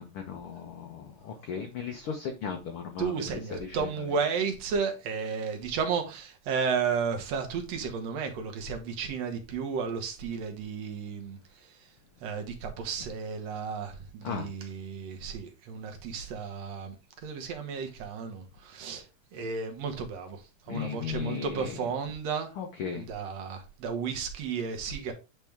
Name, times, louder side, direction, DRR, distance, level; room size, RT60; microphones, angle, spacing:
voice 1, 0.0-3.9 14.2-14.5 20.7-21.7 22.6-23.1, left 7 dB, 65° left, 1.4 m, -36 dB
voice 2, 3.0-11.4 12.2-17.0 17.2-19.1 19.3-22.5 23.0-25.1, right 6 dB, 65° right, 2.2 m, -33 dB
9.0 x 3.5 x 3.4 m
omnidirectional pair, 3.4 m